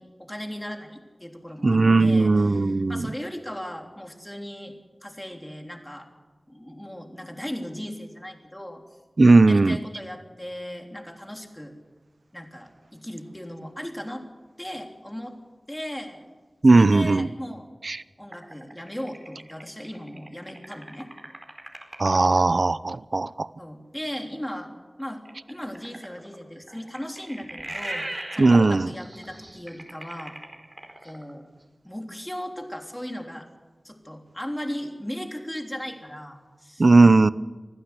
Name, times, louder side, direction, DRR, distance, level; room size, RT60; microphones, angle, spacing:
voice 1, 0.0-4.7 5.0-6.1 6.5-8.8 9.5-11.7 12.3-14.2 14.6-15.4 15.7-16.2 16.7-17.7 18.2-21.1 23.6-24.7 25.0-30.4 31.0-31.4 31.8-33.5 33.8-36.8, equal, 10° left, 3 dB, 3.4 m, -37 dB
voice 2, 1.6-3.1 9.2-9.8 16.6-17.3 17.8-18.0 22.0-23.5 28.4-28.9 36.8-37.3, right 3 dB, 60° right, 17 dB, 0.7 m, -17 dB
sound 1, 18.3-22.4 25.2-31.3, right 1 dB, 35° right, 4.6 m, -39 dB
25.5 x 15.5 x 8.2 m, 1.3 s
wide cardioid pair, 70°, 0 cm